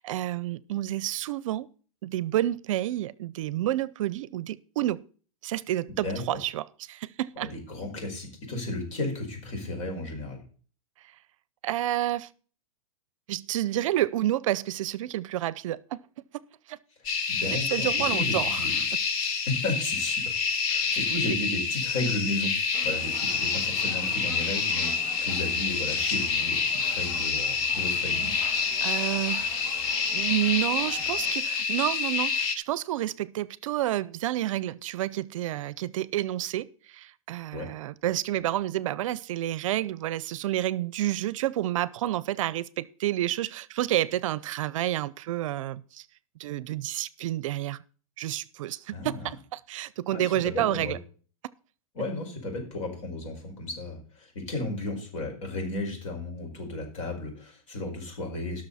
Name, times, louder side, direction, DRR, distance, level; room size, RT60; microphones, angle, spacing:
voice 1, 0.0-1.7 2.0-5.0 5.4-7.5 11.6-12.3 13.3-16.0 16.7-16.8 17.7-18.6 28.8-29.5 29.7-36.7 36.9-46.0 46.4-47.8 48.2-51.0, right 14 dB, 65° right, 0.5 m, -29 dB
voice 2, 6.0-6.4 7.4-10.4 17.3-18.8 19.5-20.3 20.7-22.5 22.8-28.3 37.5-37.7 48.9-49.3 50.1-50.9 51.9-58.6, left 2 dB, 60° left, 5.2 m, -34 dB
sound 1, 17.1-32.6, left 5 dB, 40° left, 1.4 m, -27 dB
sound 2, 22.7-31.3, right 2 dB, 5° right, 3.3 m, -46 dB
17.5 x 6.2 x 4.2 m
supercardioid pair, 155°, 18 cm